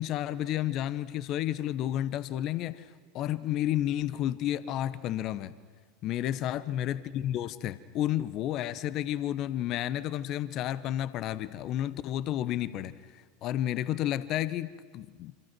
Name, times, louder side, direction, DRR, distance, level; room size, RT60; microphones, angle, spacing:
voice 1, 0.0-5.5 6.0-15.3, left 12 dB, 45° left, 16 dB, 0.9 m, -31 dB
29.0 x 26.0 x 6.1 m, 1.5 s
figure-of-eight pair, 80°, 0 cm